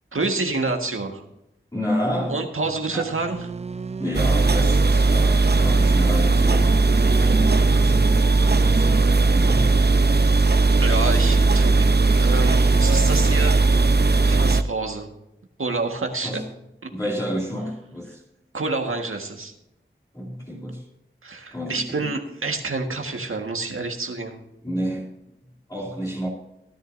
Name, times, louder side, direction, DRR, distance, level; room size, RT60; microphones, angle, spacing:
voice 1, 0.1-1.2 2.3-3.4 7.0-7.4 10.8-11.7 12.2-13.7 14.2-15.1 15.6-16.4 18.5-19.5 21.2-24.4, right 3 dB, 85° right, 3 dB, 1.7 m, -28 dB
voice 2, 1.7-2.4 2.9-3.1 4.0-8.3 8.6-9.7 16.2-16.4 16.9-18.2 20.1-20.8 21.5-22.1 24.6-25.3 25.7-26.3, equal, 20° left, -4 dB, 2.6 m, -30 dB
sound 1, 2.6-14.5, right 4 dB, 30° right, 0.4 m, -34 dB
sound 2, 4.1-14.6, right 3 dB, 50° right, 0.7 m, -18 dB
17.0 x 10.5 x 2.7 m, 0.85 s
wide cardioid pair, 45°, 21 cm